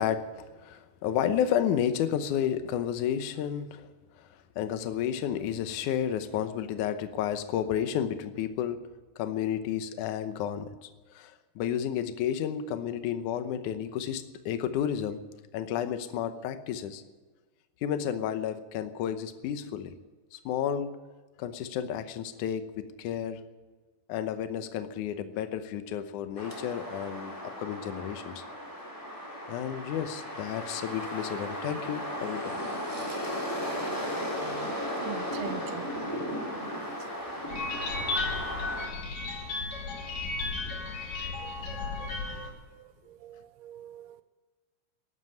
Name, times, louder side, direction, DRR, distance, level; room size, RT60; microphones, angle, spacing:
voice 1, 0.0-4.3 4.6-8.8 9.2-15.2 15.5-17.0 17.8-20.0 20.3-21.0 21.4-23.4 24.1-28.4 29.5-32.6 33.3-33.6 34.4-34.8, left 9 dB, 85° left, 1.7 m, -32 dB
sound 1, 26.4-38.9, equal, 5° left, 3.1 m, -36 dB
voice 2, 35.0-36.0 36.4-36.5 37.2-38.5 41.4-41.7 42.0-44.2, right 12 dB, 80° right, 2.5 m, -46 dB
sound 2, 37.5-42.5, left 3 dB, 55° left, 4.2 m, -34 dB
13.5 x 11.5 x 9.1 m
omnidirectional pair, 4.9 m